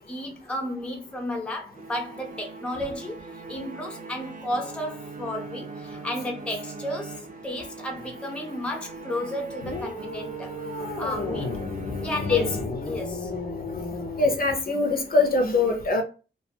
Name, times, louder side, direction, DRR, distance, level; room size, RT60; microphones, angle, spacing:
voice 1, 0.0-3.2 3.5-10.5 11.0-11.6 12.0-12.5 12.9-13.3, left 1 dB, 5° left, 0.5 m, -33 dB
sound 1, 1.7-13.2, right 4 dB, 45° right, 0.4 m, -41 dB
sound 2, 9.6-14.4, left 3 dB, 90° left, 0.6 m, -33 dB
voice 2, 14.2-16.0, left 3 dB, 50° left, 0.6 m, -22 dB
2.4 x 2.2 x 2.8 m
wide cardioid pair, 100°, 19 cm